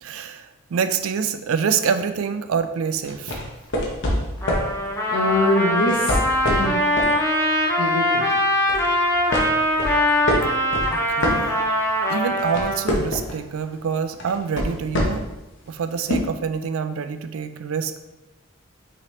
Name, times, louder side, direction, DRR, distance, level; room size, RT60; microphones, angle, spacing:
voice 1, 0.0-3.4 10.9-11.5 12.1-15.3 15.7-18.0, right 6 dB, 70° right, 9 dB, 0.4 m, -26 dB
sound 1, 3.0-4.7 5.8-7.2 7.6-7.8 8.3-8.9 9.3-11.9 12.2-13.4 14.2-15.4 16.1-16.2, left 1 dB, 55° left, 0.9 m, -25 dB
Trumpet, 4.4-12.8, equal, 10° left, 0.5 m, -22 dB
voice 2, 5.1-6.2 6.4-6.8 7.8-8.3, left 1 dB, 80° left, -4 dB, 0.8 m, -23 dB
5.6 x 3.0 x 3.1 m, 1.0 s
head